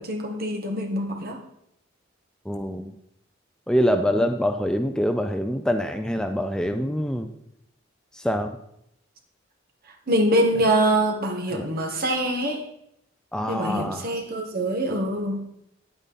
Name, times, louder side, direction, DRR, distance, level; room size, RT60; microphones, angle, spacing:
voice 1, 0.0-1.4 10.1-12.6 13.5-15.4, right 1 dB, 50° right, 3 dB, 1.6 m, -24 dB
voice 2, 2.5-2.9 3.7-7.3 8.1-8.6 11.5-11.7 13.3-14.1, equal, 5° left, 7 dB, 0.4 m, -25 dB
9.9 x 8.9 x 4.1 m, 0.77 s
head